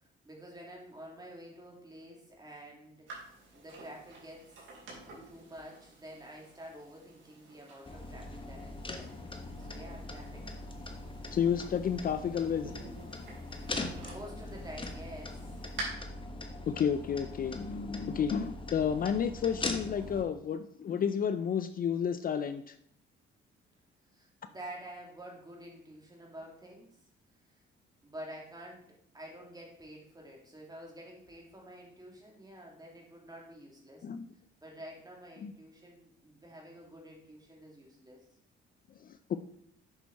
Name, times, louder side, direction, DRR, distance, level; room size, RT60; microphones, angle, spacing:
voice 1, 0.2-4.6 5.3-9.1 9.6-10.5 14.1-15.4 24.1-26.9 28.0-28.8 29.1-34.1 34.6-38.2, right 1 dB, 20° right, -2 dB, 3.0 m, -49 dB
sound 1, 3.1-15.8, right 3 dB, 75° right, 3.7 m, -50 dB
sound 2, 7.9-20.2, left 2 dB, 25° left, 1.3 m, -41 dB
voice 2, 11.3-12.7 16.7-22.7 34.0-34.3 35.4-35.5 39.3-39.4, left 7 dB, 45° left, 11 dB, 0.5 m, -31 dB
8.0 x 6.1 x 4.2 m, 0.68 s
cardioid pair, 90°, 20 cm